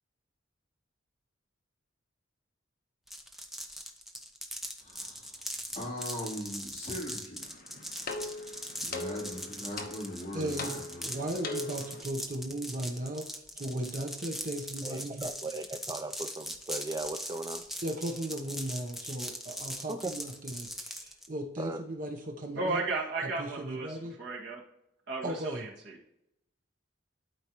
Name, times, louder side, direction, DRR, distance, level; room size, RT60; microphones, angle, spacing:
sound 1, 3.1-21.3, equal, ahead, 0.7 m, -41 dB
voice 1, 4.8-5.4 5.7-7.5 8.8-11.3, left 1 dB, 30° left, -6 dB, 3.2 m, -40 dB
sound 2, 7.4-12.0, left 3 dB, 50° left, 1.1 m, -40 dB
voice 2, 10.3-10.7 11.0-13.3 13.5-15.3 17.8-22.8 23.2-24.2 25.2-25.7, right 1 dB, 45° right, 3 dB, 0.9 m, -36 dB
voice 3, 14.8-17.7 19.9-20.2 21.6-21.8, right 2 dB, 20° right, 8 dB, 0.3 m, -37 dB
voice 4, 22.5-24.6 25.1-26.0, right 3 dB, 60° right, -2 dB, 1.9 m, -34 dB
12.0 x 4.8 x 3.0 m, 0.81 s
head